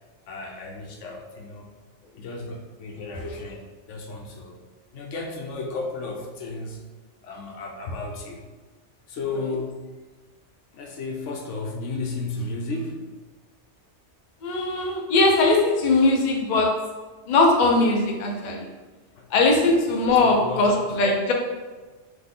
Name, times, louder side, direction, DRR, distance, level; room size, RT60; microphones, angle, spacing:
voice 1, 0.3-1.7 2.1-4.6 4.9-6.8 7.2-8.4 9.1-9.8 10.7-13.0 19.2-19.3 20.1-20.6, left 3 dB, 80° left, 1 dB, 1.0 m, -33 dB
voice 2, 14.4-16.7 17.3-18.7 19.3-21.3, left 2 dB, 45° left, 1 dB, 0.7 m, -20 dB
3.9 x 3.0 x 3.7 m, 1.3 s
omnidirectional pair, 1.2 m